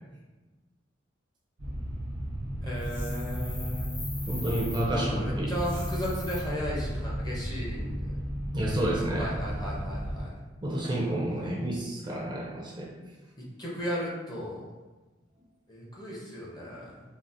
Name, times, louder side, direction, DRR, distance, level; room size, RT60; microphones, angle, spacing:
sound 1, 1.6-10.2, equal, 85° right, 1.1 m, -34 dB
voice 1, 2.6-3.9 4.9-8.2 9.2-10.3 13.6-14.6 15.7-17.0, equal, 20° left, -5 dB, 0.6 m, -35 dB
sound 2, 2.8-4.8 5.5-6.4, left 3 dB, 70° left, 0.9 m, -43 dB
voice 2, 4.3-5.5 8.5-9.3 10.6-12.9, right 1 dB, 25° right, -4 dB, 0.5 m, -30 dB
3.9 x 2.0 x 2.5 m, 1.2 s
head